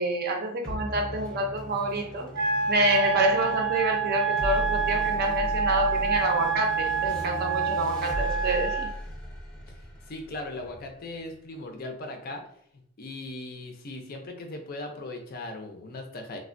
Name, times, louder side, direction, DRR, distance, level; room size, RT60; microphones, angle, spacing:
voice 1, 0.0-8.9, right 1 dB, 45° right, 3 dB, 0.5 m, -27 dB
sound 1, 0.6-11.4, equal, 5° left, 0.7 m, -37 dB
Wind instrument woodwind instrument, 2.3-8.9, right 6 dB, 85° right, 0.6 m, -27 dB
voice 2, 10.1-12.4 13.0-16.4, left 2 dB, 40° left, 4 dB, 0.4 m, -38 dB
3.2 x 2.1 x 2.5 m, 0.69 s
head